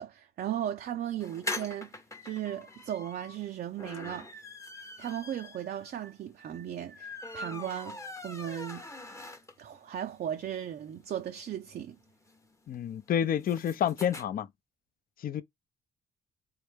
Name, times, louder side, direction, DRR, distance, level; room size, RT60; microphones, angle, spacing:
voice 1, 0.0-1.9 2.2-4.3 5.0-8.8 9.6-12.0, right 10 dB, 50° right, 0.4 m, -36 dB
sound 1, 1.2-9.8 10.2-10.3 10.5-10.6 10.8-14.2, left 2 dB, 15° left, 0.7 m, -43 dB
voice 2, 12.7-14.5 15.2-15.4, left 9 dB, 45° left, 0.5 m, -29 dB
3.5 x 3.2 x 3.4 m
cardioid pair, 90°, 20 cm